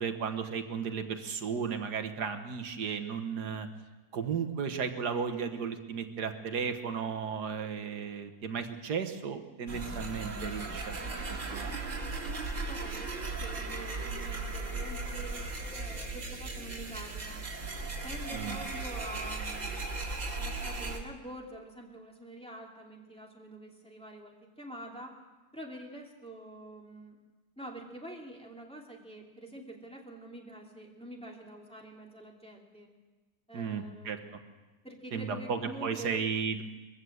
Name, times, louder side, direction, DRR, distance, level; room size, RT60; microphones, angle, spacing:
voice 1, 0.0-3.7 4.1-11.8 18.3-18.6 33.5-34.2 35.1-36.6, right 6 dB, 85° right, 6 dB, 1.9 m, -34 dB
sound 1, 9.7-21.0, right 3 dB, 50° right, 2.3 m, -37 dB
voice 2, 12.7-15.4 15.7-17.5 18.0-20.1 20.3-25.1 25.5-27.2 27.6-32.9 33.5-34.4 34.8-36.2, right 1 dB, 5° left, -2 dB, 2.9 m, -46 dB
22.0 x 15.0 x 8.0 m, 1.2 s
omnidirectional pair, 1.7 m